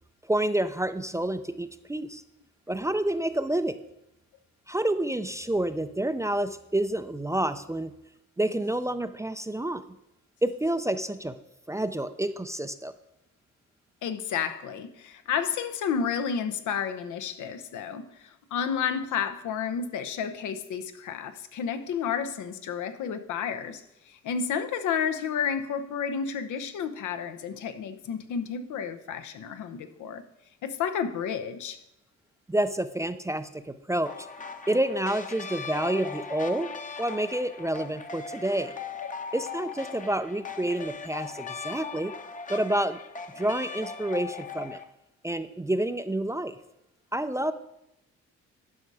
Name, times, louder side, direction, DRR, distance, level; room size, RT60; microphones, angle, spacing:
voice 1, 0.3-2.2 2.7-3.8 4.7-7.9 8.4-9.8 10.4-11.4 11.7-12.9 32.5-34.3 34.7-36.7 37.0-38.7 39.3-42.1 42.5-43.0 43.4-44.8 45.2-46.6 47.1-47.5, right 1 dB, 10° right, 0.4 m, -28 dB
voice 2, 14.0-30.2 30.6-31.8, left 7 dB, 75° left, 0.8 m, -31 dB
sound 1, 34.1-44.8, left 5 dB, 25° left, 0.8 m, -39 dB
11.0 x 5.5 x 4.8 m
cardioid pair, 90°, 30 cm